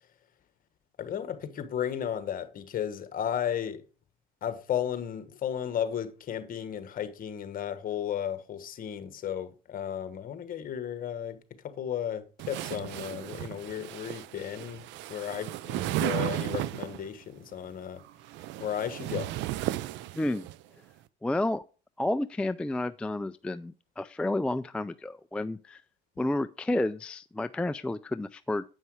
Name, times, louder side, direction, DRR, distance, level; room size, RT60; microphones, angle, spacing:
voice 1, 1.0-3.8 4.4-11.4 11.6-14.8 15.1-18.0 18.6-19.3, left 9 dB, 45° left, 1.3 m, -34 dB
sound 1, 12.4-17.1 18.1-20.6, right 14 dB, 65° right, 0.5 m, -34 dB
voice 2, 20.2-20.5 21.2-21.6 22.0-25.8 26.2-28.6, left 1 dB, 5° left, 0.3 m, -31 dB
8.1 x 5.5 x 4.7 m
supercardioid pair, 90°, 20 cm